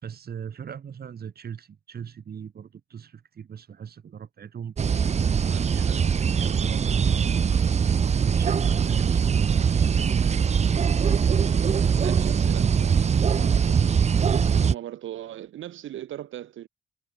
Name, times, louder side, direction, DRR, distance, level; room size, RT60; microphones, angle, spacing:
voice 1, 0.0-7.9 8.3-10.3, right 7 dB, 50° right, 4.7 m, -39 dB
sound 1, 4.8-14.7, right 6 dB, 35° right, 0.7 m, -22 dB
voice 2, 12.0-14.0 14.2-16.7, right 12 dB, 75° right, 5.0 m, -39 dB
cardioid pair, 90°, 20 cm